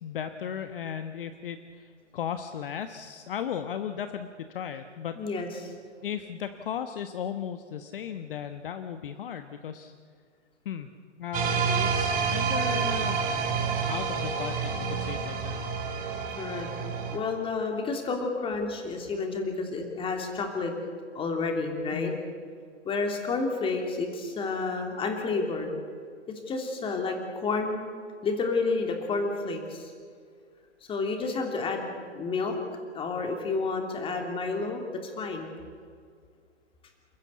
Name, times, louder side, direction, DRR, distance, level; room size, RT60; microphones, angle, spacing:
voice 1, 0.0-5.2 6.0-9.9 10.6-10.9 11.2-13.2 13.9-15.6 21.9-22.2, left 8 dB, 50° left, 9 dB, 1.2 m, -36 dB
voice 2, 5.2-5.7 16.4-16.7 17.1-20.7 21.1-22.1 22.8-25.7 26.5-27.8 28.2-29.9 30.9-32.5 32.9-35.5, left 4 dB, 15° left, 3 dB, 3.1 m, -30 dB
sound 1, 11.3-17.2, right 5 dB, 25° right, 3.1 m, -28 dB
29.0 x 14.0 x 8.4 m, 2.1 s
figure-of-eight pair, 125°, 35 cm